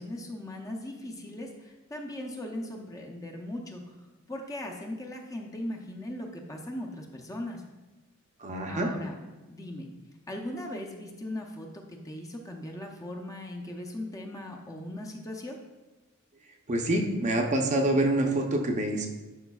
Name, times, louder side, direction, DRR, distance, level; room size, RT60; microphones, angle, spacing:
voice 1, 0.0-7.6 8.7-9.2 9.5-9.9 10.3-15.6, left 1 dB, 15° left, 1 dB, 0.6 m, -39 dB
voice 2, 8.4-8.9 16.7-19.1, right 1 dB, 35° right, 3 dB, 0.6 m, -26 dB
11.0 x 5.0 x 2.3 m, 1.1 s
head